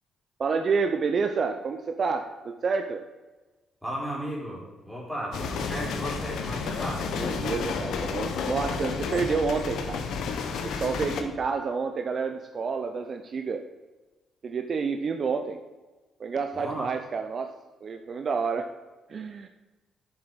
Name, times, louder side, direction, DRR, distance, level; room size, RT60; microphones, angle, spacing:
voice 1, 0.4-3.0 7.2-10.0 10.6-13.6 14.4-15.6 16.2-17.5 17.8-18.7 19.1-19.5, right 5 dB, 50° right, 6 dB, 0.7 m, -29 dB
voice 2, 3.8-7.1 16.5-16.9, right 1 dB, ahead, -4 dB, 4.0 m, -35 dB
sound 1, 5.3-11.2, left 5 dB, 75° left, 1.1 m, -31 dB
10.0 x 7.2 x 5.4 m, 1.2 s
cardioid pair, 90°, 0 cm